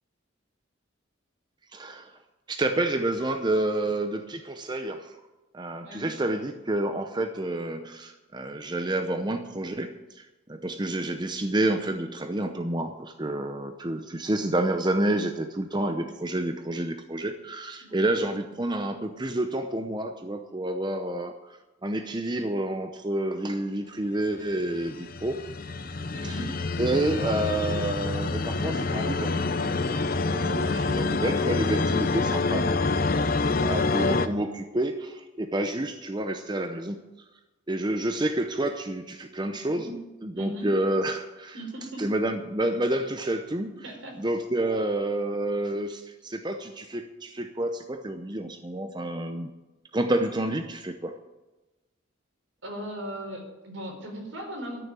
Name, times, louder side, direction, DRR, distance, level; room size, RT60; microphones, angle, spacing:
voice 1, 1.7-2.2 2.5-5.2 5.5-25.4 26.2-26.3 26.8-30.0 30.3-32.7 33.6-37.0 37.7-39.9 40.2-41.5 42.0-43.7 44.2-49.5 49.9-51.2, right 1 dB, 20° right, 6 dB, 0.7 m, -29 dB
voice 2, 17.8-18.2 26.1-26.6 33.9-34.0 39.7-40.0 40.3-40.7 41.5-42.1 43.8-44.2 52.6-54.8, right 1 dB, 75° right, 1 dB, 4.4 m, -38 dB
sound 1, 24.6-34.3, left 3 dB, 45° left, 0.7 m, -27 dB
13.0 x 7.1 x 9.8 m, 1.1 s
head